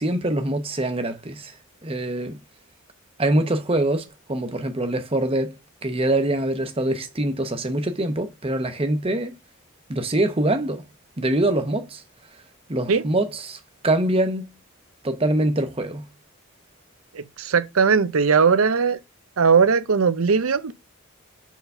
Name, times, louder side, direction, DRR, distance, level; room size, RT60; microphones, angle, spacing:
voice 1, 0.0-1.5 1.8-2.4 3.2-5.6 5.8-9.3 9.9-10.8 11.2-12.0 12.7-14.5 15.0-16.0, right 1 dB, 25° right, 0.8 m, -24 dB
voice 2, 17.1-19.0 19.4-20.7, right 5 dB, 75° right, 0.6 m, -19 dB
4.6 x 3.9 x 5.4 m
head